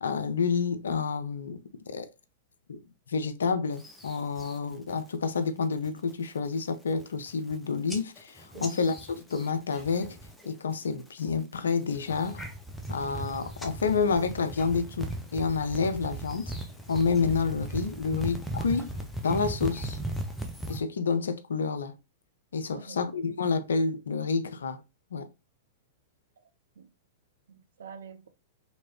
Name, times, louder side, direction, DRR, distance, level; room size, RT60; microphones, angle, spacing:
voice 1, 0.0-2.1 2.7-2.8 3.1-10.2 10.4-12.4 12.9-16.5 16.9-18.9 19.2-20.0 20.7-22.0 22.5-24.8 25.1-25.3, left 5 dB, 70° left, 0.4 m, -29 dB
sound 1, 3.8-4.6 5.0-5.4 5.7-6.1 6.6-6.7 6.9-7.6 7.9-10.5 10.7-11.2 11.8-20.8, right 1 dB, 5° left, 0.5 m, -38 dB
voice 2, 8.5-8.9 22.7-23.2 26.4-26.5 26.8-26.9 27.5-28.3, right 6 dB, 65° right, 0.4 m, -47 dB
3.0 x 2.8 x 2.7 m
figure-of-eight pair, 100°, 0 cm